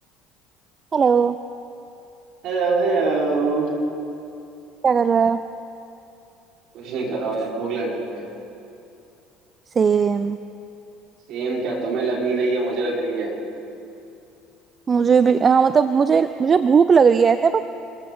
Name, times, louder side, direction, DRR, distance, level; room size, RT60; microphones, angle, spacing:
voice 1, 0.9-1.4 4.8-5.4 9.8-10.4 14.9-17.7, right 6 dB, 35° right, 12 dB, 0.5 m, -17 dB
voice 2, 2.4-3.8 6.7-8.2 11.3-13.3, right 3 dB, 60° right, -3 dB, 4.5 m, -24 dB
25.0 x 15.0 x 3.9 m, 2.8 s
hypercardioid pair, 65°, 0 cm